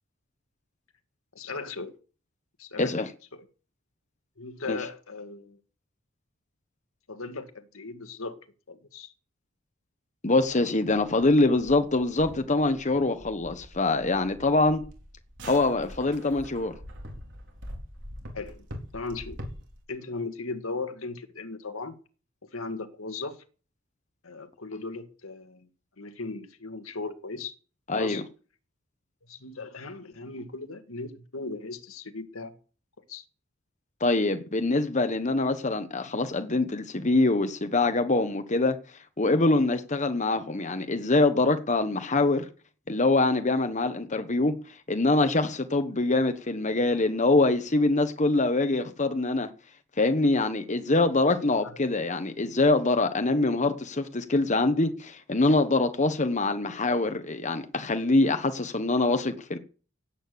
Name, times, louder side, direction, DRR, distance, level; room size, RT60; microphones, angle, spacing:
voice 1, 1.3-1.9 2.6-2.9 3.3-3.5 4.4-5.6 7.1-8.4 8.7-9.1 18.3-18.7 18.9-19.4 19.9-22.0 22.5-23.4 24.2-25.7 26.0-27.5 27.9-28.2 29.2-32.5 33.1-33.3 51.6-51.8 52.5-52.6, left 3 dB, 80° left, 1.9 m, -37 dB
voice 2, 2.8-3.1 4.7-4.8 10.2-14.8 15.4-16.7 27.9-28.2 34.0-38.8 39.2-42.5 42.9-44.6 44.9-49.5 50.0-59.6, left 2 dB, 35° left, 1.2 m, -24 dB
sound 1, 10.4-19.8, equal, 60° right, 4.1 m, -44 dB
17.5 x 8.9 x 6.9 m
head